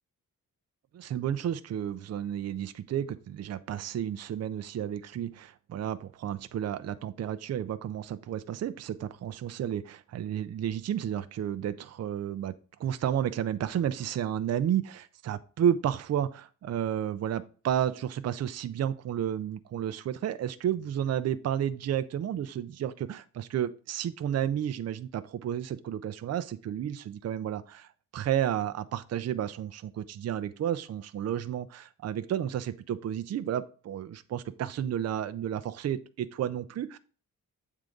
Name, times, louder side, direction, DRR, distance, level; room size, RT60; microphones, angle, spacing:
voice 1, 0.9-12.5 12.8-37.0, right 10 dB, 50° right, 11 dB, 0.5 m, -32 dB
7.7 x 3.6 x 5.1 m, 0.37 s
wide cardioid pair, 160°, 33 cm